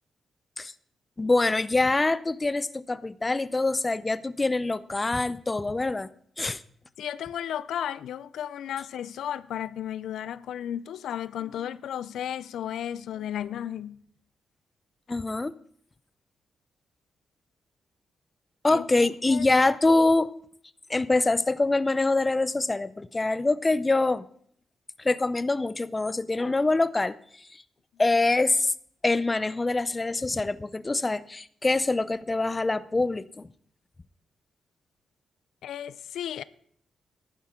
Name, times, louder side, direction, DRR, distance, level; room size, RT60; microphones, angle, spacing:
voice 1, 1.2-6.1 6.4-6.6 15.1-15.5 18.6-20.3 20.9-24.3 25.0-27.2 28.0-28.7 29.0-33.5, left 2 dB, 20° left, 0.5 m, -25 dB
voice 2, 7.0-14.0 18.7-19.5 35.6-36.4, left 10 dB, 85° left, 0.4 m, -34 dB
14.5 x 11.0 x 3.7 m
cardioid pair, 95°, 0 cm